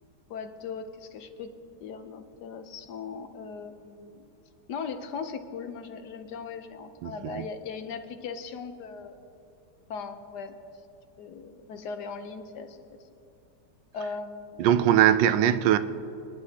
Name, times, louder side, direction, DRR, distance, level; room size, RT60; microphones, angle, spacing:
voice 1, 0.3-4.3 4.7-9.2 9.9-10.6 11.2-12.8 13.9-14.7, left 5 dB, 65° left, 1.3 m, -38 dB
voice 2, 7.0-7.4 14.6-15.8, right 11 dB, 80° right, 1.2 m, -21 dB
26.0 x 9.8 x 2.8 m
omnidirectional pair, 2.0 m